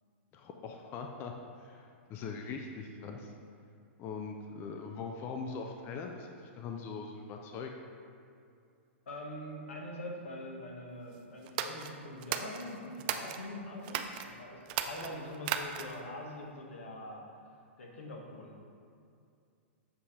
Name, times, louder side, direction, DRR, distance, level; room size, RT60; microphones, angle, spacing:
voice 1, 0.3-1.3 1.6-3.3 4.0-7.7, left 5 dB, 35° left, 3 dB, 0.4 m, -41 dB
voice 2, 9.1-17.3 17.8-18.8, left 1 dB, 85° left, 0 dB, 1.0 m, -44 dB
sound 1, 11.4-13.4 13.8-14.3 14.6-16.1, right 10 dB, 50° right, 0.4 m, -36 dB
7.4 x 2.8 x 4.8 m, 2.4 s
hypercardioid pair, 120°, 7 cm